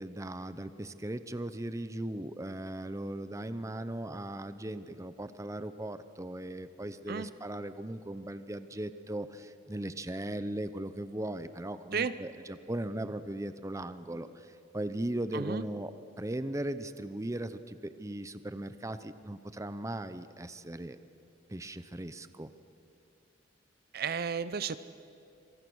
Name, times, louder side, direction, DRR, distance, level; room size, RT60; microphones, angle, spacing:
voice 1, 0.0-21.0 21.5-22.5, right 1 dB, 15° right, 12 dB, 0.7 m, -38 dB
voice 2, 15.3-15.6 23.9-24.8, right 6 dB, 55° right, 14 dB, 0.6 m, -33 dB
26.5 x 23.5 x 6.3 m, 2.6 s
head